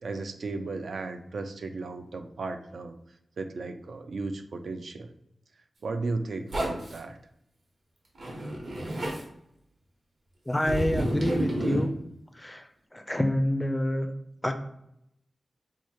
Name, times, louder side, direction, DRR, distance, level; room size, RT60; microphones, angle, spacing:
voice 1, 0.0-3.0 3.4-5.1 5.8-7.2, right 3 dB, 75° right, 7 dB, 0.4 m, -35 dB
Zipper (clothing), 6.5-7.0 8.2-9.2 10.6-11.9, right 1 dB, 60° right, 1.1 m, -30 dB
voice 2, 10.5-11.9 12.4-12.6 12.9-14.1 14.4-14.5, left 1 dB, 10° left, 6 dB, 0.4 m, -27 dB
3.0 x 2.3 x 4.2 m, 0.76 s
wide cardioid pair, 140°, 0 cm